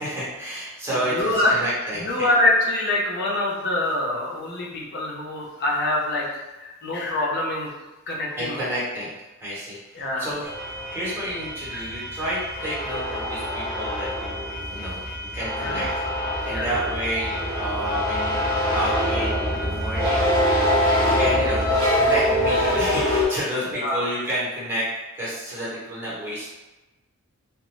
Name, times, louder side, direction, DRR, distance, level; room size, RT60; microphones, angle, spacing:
voice 1, 0.0-2.3 8.4-9.1 9.4-10.5 10.9-15.9 16.5-20.3 21.0-21.6 21.9-24.9 25.1-26.5, right 1 dB, 10° right, -9 dB, 1.0 m, -30 dB
voice 2, 0.9-6.2 6.6-7.7 8.1-8.7 9.9-10.3 11.7-11.9 15.6-15.9 16.5-16.7 23.7-24.0, left 1 dB, 50° left, -3 dB, 0.6 m, -25 dB
sound 1, 10.4-23.2, left 1 dB, 20° left, 0.8 m, -24 dB
2.5 x 2.2 x 3.0 m, 1.1 s
head